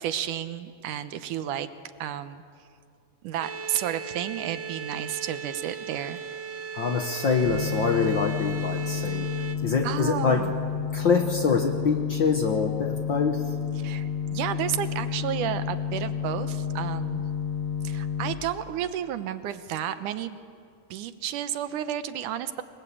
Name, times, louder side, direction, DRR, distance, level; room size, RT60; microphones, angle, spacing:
voice 1, 0.0-1.7 2.0-2.4 3.2-6.2 9.8-10.5 13.8-17.2 17.8-20.4 20.9-22.6, right 10 dB, 70° right, 11 dB, 2.2 m, -32 dB
sound 1, 3.4-9.5, right 6 dB, 45° right, 1.6 m, -37 dB
voice 2, 6.7-9.3 9.6-10.5 10.9-13.4, left 5 dB, 80° left, 5 dB, 1.0 m, -25 dB
sound 2, 7.4-18.3, left 7 dB, 55° left, 2.4 m, -30 dB
29.0 x 22.0 x 8.5 m, 2.3 s
omnidirectional pair, 4.1 m